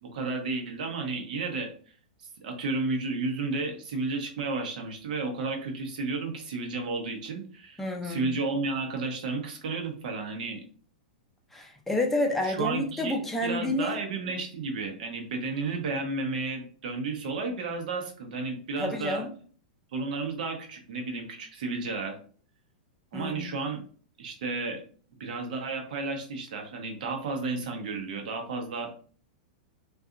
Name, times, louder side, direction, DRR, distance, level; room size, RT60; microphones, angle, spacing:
voice 1, 0.0-1.7 2.4-10.6 12.4-19.2 19.9-22.2 23.1-23.8 24.2-24.8 25.2-28.9, right 3 dB, 70° right, 3 dB, 0.8 m, -32 dB
voice 2, 7.8-8.3 11.5-14.0 18.8-19.3 23.1-23.5, left 2 dB, 5° left, 1 dB, 0.5 m, -29 dB
2.7 x 2.3 x 2.4 m, 0.43 s
hypercardioid pair, 135°, 5 cm